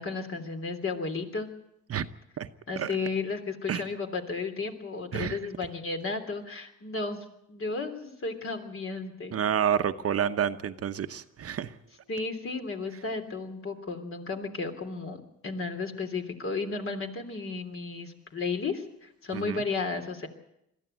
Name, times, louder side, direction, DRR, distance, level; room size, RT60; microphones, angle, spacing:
voice 1, 0.0-1.5 2.7-9.4 12.1-20.3, left 4 dB, 45° left, 5 dB, 3.3 m, -33 dB
voice 2, 9.3-11.8 19.3-19.6, right 8 dB, 50° right, 9 dB, 1.0 m, -29 dB
21.5 x 14.0 x 9.2 m, 0.81 s
cardioid pair, 90°, 30 cm